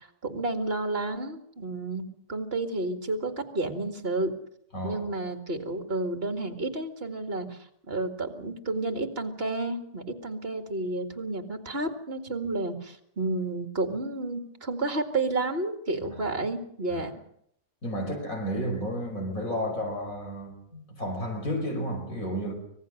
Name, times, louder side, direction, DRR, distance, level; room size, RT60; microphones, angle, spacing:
voice 1, 0.0-4.3 4.8-7.6 7.9-17.1, right 2 dB, 45° right, 2.3 m, -31 dB
voice 2, 4.7-5.0 16.9-17.0 17.8-22.5, equal, 85° left, 6.1 m, -32 dB
25.0 x 18.5 x 6.5 m
omnidirectional pair, 1.4 m